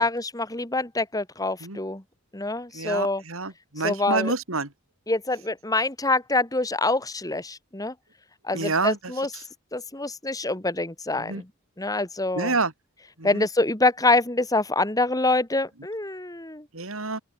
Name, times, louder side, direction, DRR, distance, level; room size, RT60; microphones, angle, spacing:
voice 1, 0.0-2.0 2.3-3.2 3.8-4.3 5.1-7.9 8.4-9.3 9.7-11.5 11.8-12.5 13.2-16.7, left 2 dB, 15° left, 2.2 m, -25 dB
voice 2, 2.7-4.7 8.5-9.0 11.2-11.4 12.4-12.7 13.2-13.4 16.7-17.2, right 3 dB, 75° right, 3.5 m, -27 dB
open air
head